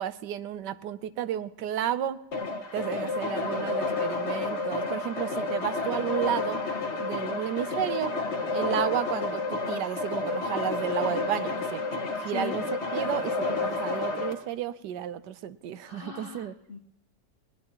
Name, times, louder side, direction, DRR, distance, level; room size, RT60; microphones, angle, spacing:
voice 1, 0.0-2.2 2.7-6.6 7.0-8.1 8.5-11.8 12.2-16.5, right 10 dB, 80° right, 14 dB, 1.3 m, -32 dB
sound 1, 2.3-14.3, left 3 dB, 40° left, 1.6 m, -30 dB
voice 2, 15.8-16.8, left 6 dB, 65° left, 8 dB, 0.5 m, -40 dB
21.0 x 19.0 x 2.9 m, 0.82 s
omnidirectional pair, 1.8 m